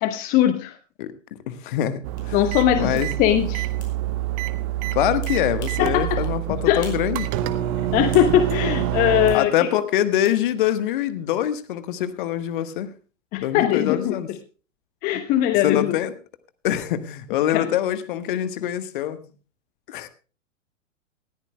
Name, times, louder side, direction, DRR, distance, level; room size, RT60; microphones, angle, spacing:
voice 1, 0.0-0.8 2.3-3.6 5.8-6.9 7.9-9.7 13.3-14.4 15.0-16.0 17.5-17.7, left 12 dB, 20° left, 0.8 m, -21 dB
voice 2, 1.5-2.3 2.8-3.1 4.9-7.3 9.3-12.9 13.4-14.3 15.6-16.1 16.6-19.2 19.9-20.1, left 11 dB, 40° left, 1.3 m, -24 dB
sound 1, 2.0-9.4, right 13 dB, 30° right, 1.0 m, -26 dB
sound 2, 2.2-2.3 3.0-3.1 3.8-4.0 5.2-5.9 6.2-6.4 6.8-7.1 7.4-8.4 9.3-9.4 10.2-10.4, left 4 dB, 60° left, 5.3 m, -44 dB
19.5 x 14.5 x 2.2 m
figure-of-eight pair, 105°, 38 cm